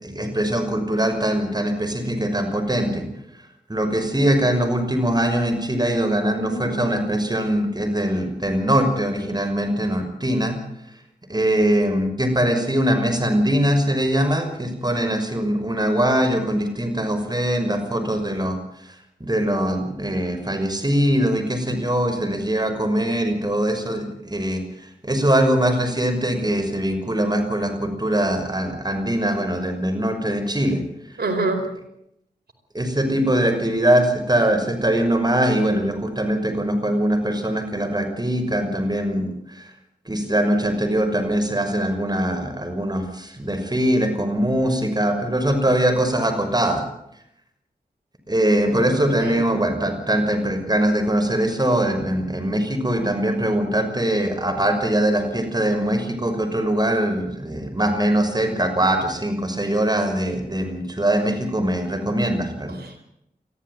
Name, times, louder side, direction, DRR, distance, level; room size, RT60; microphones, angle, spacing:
voice 1, 0.0-3.1 3.7-10.6 11.3-18.6 19.2-24.6 25.0-30.8 32.7-39.3 40.1-46.8 48.3-62.7, right 1 dB, 25° right, 6 dB, 6.0 m, -22 dB
voice 2, 6.4-7.7 31.2-31.6 48.6-49.4 62.8-63.0, right 2 dB, 70° right, 5 dB, 4.6 m, -29 dB
22.5 x 14.0 x 9.3 m, 0.77 s
cardioid pair, 45°, 17 cm